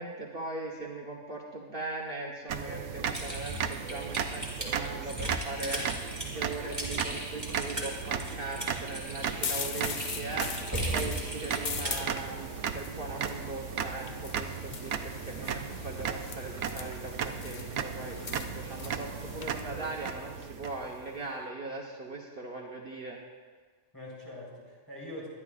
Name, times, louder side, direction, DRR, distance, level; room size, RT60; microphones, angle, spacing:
voice 1, 0.0-23.2, right 2 dB, 50° right, -2 dB, 1.3 m, -40 dB
sound 1, 2.5-21.2, right 7 dB, 75° right, 1.0 m, -36 dB
Typing, 3.1-12.1, right 1 dB, 15° right, 2.6 m, -37 dB
sound 2, 9.2-19.6, left 6 dB, 50° left, 0.7 m, -41 dB
voice 2, 9.8-10.6 19.3-19.4 23.9-25.3, left 1 dB, 15° left, -5 dB, 4.3 m, -45 dB
22.5 x 11.0 x 2.5 m, 1.5 s
omnidirectional pair, 1.2 m